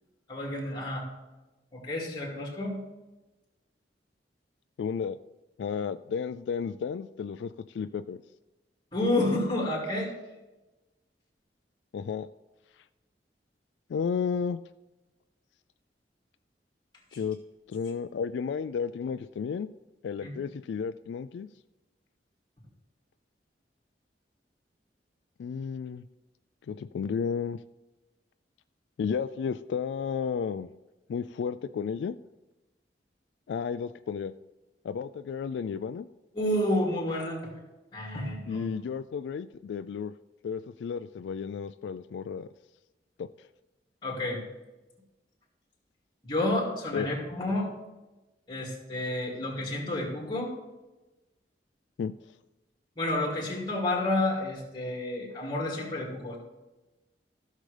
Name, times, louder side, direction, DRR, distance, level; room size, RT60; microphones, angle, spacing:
voice 1, 0.3-1.1 1.7-2.8 8.9-10.1 20.2-20.3 36.3-37.5 37.9-38.7 44.0-44.4 46.2-47.7 48.5-50.5 53.0-56.4, left 1 dB, 25° left, -1 dB, 2.5 m, -30 dB
voice 2, 4.8-5.2 5.6-8.2 11.9-12.3 13.9-14.6 17.1-17.4 17.7-19.7 20.0-21.5 25.4-26.1 26.7-27.6 29.0-30.7 31.1-32.2 33.5-34.3 34.8-36.1 38.5-40.1 40.4-42.5 43.2-43.3 46.9-47.1 52.0-52.1, left 6 dB, 85° left, 12 dB, 0.3 m, -32 dB
15.0 x 6.5 x 3.3 m, 1.1 s
head